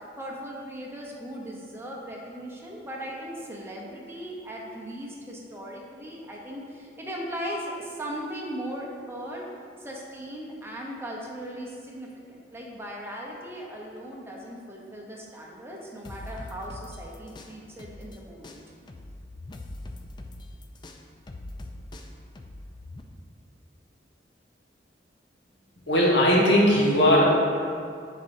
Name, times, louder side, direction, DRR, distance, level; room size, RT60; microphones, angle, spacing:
voice 1, 0.2-9.5 9.8-18.6, equal, 15° right, -3 dB, 0.8 m, -38 dB
sound 1, 16.0-18.2 18.4-23.0, left 2 dB, 25° left, 0.3 m, -42 dB
voice 2, 25.9-27.3, equal, 75° left, -5 dB, 1.4 m, -19 dB
10.0 x 4.2 x 2.7 m, 2.3 s
head